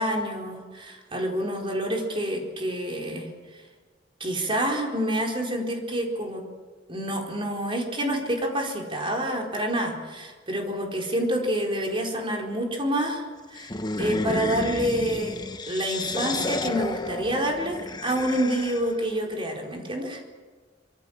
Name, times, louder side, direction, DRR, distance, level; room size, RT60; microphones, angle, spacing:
voice 1, 0.0-3.6 4.2-6.4 6.9-13.2 13.5-13.7 14.0-15.4 15.7-20.2, right 1 dB, 30° right, 1 dB, 4.4 m, -28 dB
sound 1, 13.5-19.0, left 2 dB, 25° left, 1.2 m, -31 dB
26.0 x 23.5 x 7.3 m, 1.4 s
head